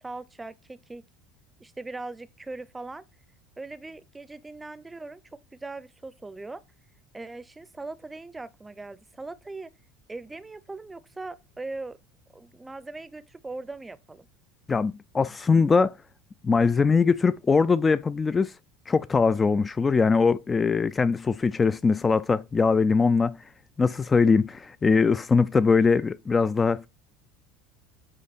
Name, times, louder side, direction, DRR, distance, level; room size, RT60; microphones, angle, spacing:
voice 1, 0.0-1.0 1.6-3.0 3.6-6.6 7.1-9.7 10.1-12.0 12.3-14.3, right 3 dB, 15° right, 0.7 m, -40 dB
voice 2, 14.7-15.9 16.4-18.5 18.9-23.4 23.8-26.9, left 4 dB, 20° left, 0.4 m, -22 dB
8.8 x 3.6 x 4.2 m
supercardioid pair, 100°, 0 cm